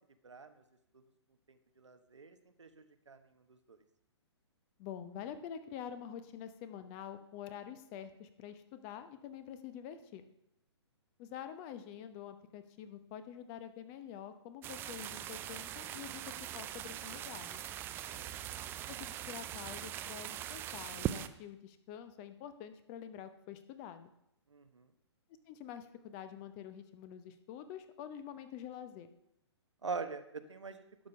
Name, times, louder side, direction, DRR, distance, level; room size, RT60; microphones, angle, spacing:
voice 1, 1.8-3.2 3.5-3.8 18.1-18.3 24.5-24.9 29.8-30.8, right 4 dB, 80° right, 9 dB, 1.0 m, -43 dB
voice 2, 4.8-10.2 11.2-16.2 16.5-17.6 18.9-24.1 25.5-29.1, left 9 dB, 30° left, 10 dB, 0.8 m, -47 dB
sound 1, 14.6-21.3, right 11 dB, 15° right, 0.3 m, -41 dB
11.5 x 5.2 x 6.7 m, 0.79 s
figure-of-eight pair, 125°, 15 cm